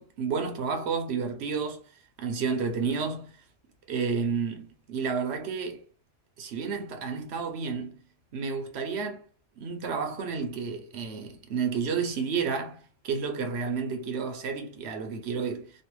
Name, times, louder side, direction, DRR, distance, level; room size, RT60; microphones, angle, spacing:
voice 1, 0.0-1.8 2.2-3.3 3.9-5.8 6.4-8.0 8.3-9.2 9.6-15.7, right 5 dB, 70° right, 1.0 m, -31 dB
3.2 x 2.3 x 3.0 m
omnidirectional pair, 1.2 m